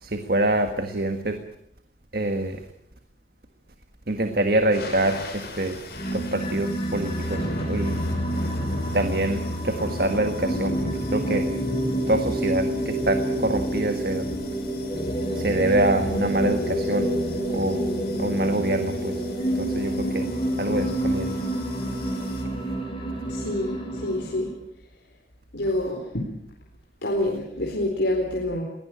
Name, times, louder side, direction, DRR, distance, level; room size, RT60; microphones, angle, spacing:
voice 1, 0.0-1.4 2.1-2.6 4.1-5.8 6.1-8.0 8.9-11.5 12.1-14.3 15.3-17.1 17.5-17.8 18.1-19.2 19.5-20.3 20.6-21.4, right 1 dB, 55° right, 7 dB, 1.6 m, -25 dB
sound 1, 4.7-22.4, left 1 dB, 60° left, 5.5 m, -39 dB
sound 2, 5.9-24.5, right 1 dB, 30° left, 4.7 m, -28 dB
voice 2, 23.3-24.5 25.5-26.2 27.0-28.6, left 1 dB, 80° left, 0 dB, 4.1 m, -27 dB
22.0 x 18.0 x 8.8 m, 0.73 s
head